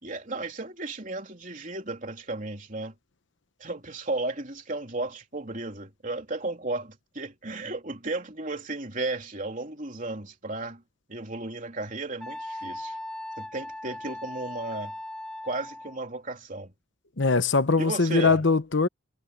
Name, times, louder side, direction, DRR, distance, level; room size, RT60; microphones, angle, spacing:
voice 1, 0.0-2.9 3.6-10.8 11.1-13.0 13.4-14.9 15.4-16.7 17.8-18.4, right 2 dB, 40° right, 3.6 m, -34 dB
Wind instrument woodwind instrument, 12.2-16.0, left 1 dB, 5° left, 1.6 m, -38 dB
voice 2, 17.2-18.9, left 4 dB, 65° left, 1.0 m, -22 dB
head